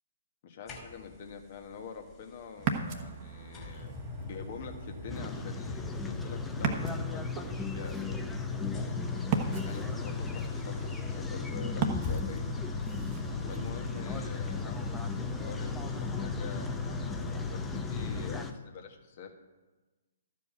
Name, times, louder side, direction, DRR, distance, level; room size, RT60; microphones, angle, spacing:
voice 1, 0.4-3.9 4.2-8.3 9.5-12.5 13.5-19.3, left 6 dB, 45° left, 4 dB, 1.5 m, -46 dB
sound 1, 0.7-1.3 2.7-2.8 3.5-18.5, left 4 dB, 25° left, 2.6 m, -37 dB
Ocean, 2.6-13.7, right 6 dB, 35° right, 1.2 m, -38 dB
sound 2, 5.1-18.5, left 3 dB, 5° left, 0.7 m, -40 dB
13.0 x 5.1 x 6.9 m, 1.2 s
figure-of-eight pair, 125°, 0 cm